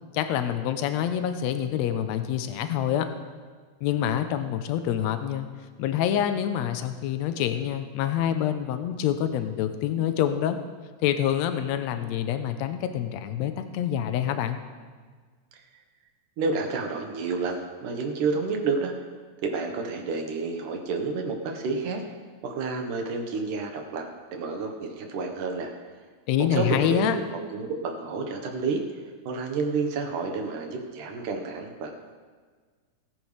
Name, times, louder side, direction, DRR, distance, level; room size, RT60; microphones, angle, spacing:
voice 1, 0.1-3.1 3.8-5.5 5.8-10.6 11.0-14.6 26.3-27.2, left 10 dB, 75° left, 8 dB, 1.9 m, -26 dB
voice 2, 16.4-18.9 19.4-22.0 22.4-24.0 24.3-25.7 26.5-28.8 29.2-31.9, right 4 dB, 90° right, 3 dB, 2.9 m, -30 dB
21.5 x 9.4 x 3.4 m, 1.5 s
omnidirectional pair, 3.5 m